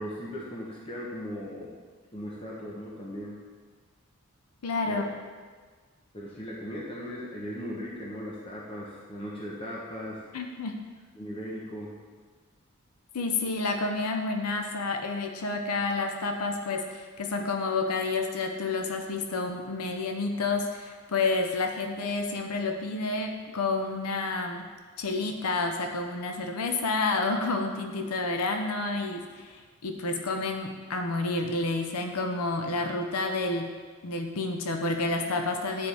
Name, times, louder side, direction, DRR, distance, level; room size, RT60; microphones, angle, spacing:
voice 1, 0.0-1.8 2.1-3.4 4.9-5.0 6.1-10.2 11.2-12.0 30.1-30.2, equal, 25° left, -5 dB, 1.0 m, -38 dB
voice 2, 4.6-5.0 10.3-10.8 13.1-24.7 25.0-33.7 34.0-35.9, left 3 dB, 80° left, 4 dB, 0.7 m, -29 dB
9.4 x 4.7 x 3.4 m, 1.5 s
head